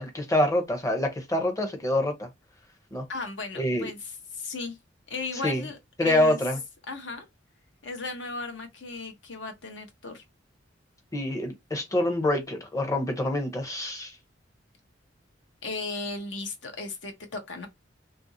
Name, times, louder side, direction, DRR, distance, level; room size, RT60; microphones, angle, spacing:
voice 1, 0.0-2.3 2.9-3.0 3.6-3.9 5.4-5.6 6.0-6.6 11.1-14.1, left 1 dB, 15° left, 0.7 m, -26 dB
voice 2, 3.1-4.8 5.1-6.4 6.9-7.3 7.8-10.2 15.6-17.7, left 3 dB, 65° left, 0.9 m, -36 dB
2.9 x 2.5 x 2.6 m
head